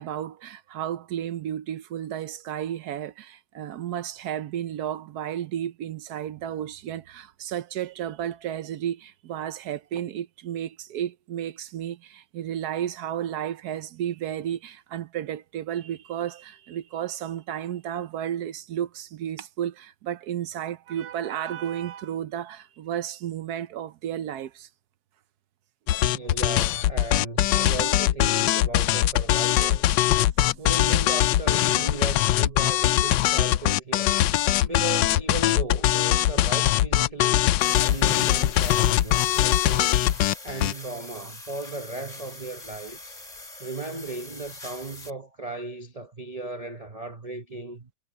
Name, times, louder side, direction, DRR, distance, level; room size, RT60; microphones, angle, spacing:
voice 1, 0.0-24.7 30.4-30.6, right 10 dB, 65° right, 1.1 m, -33 dB
sound 1, 25.9-40.7, left 14 dB, 85° left, 1.3 m, -22 dB
voice 2, 25.9-30.0 30.6-34.2 34.6-40.0 40.4-43.2 43.6-47.9, right 3 dB, 30° right, 0.7 m, -36 dB
sound 2, 37.6-45.1, left 2 dB, 20° left, 3.9 m, -43 dB
omnidirectional pair, 2.0 m